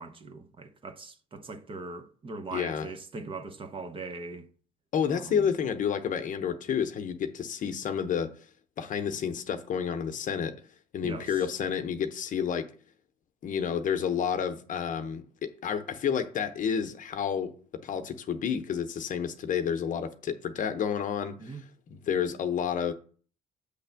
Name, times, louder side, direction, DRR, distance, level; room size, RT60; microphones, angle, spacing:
voice 1, 0.0-4.4 5.1-5.5 11.0-11.4 21.4-21.6, right 3 dB, 30° right, 0.8 m, -40 dB
voice 2, 2.5-2.9 4.9-8.3 8.8-10.6 10.9-12.7 13.4-17.5 17.8-21.6 21.9-22.9, left 7 dB, 50° left, 0.8 m, -30 dB
7.9 x 3.4 x 5.7 m
cardioid pair, 110°, 17 cm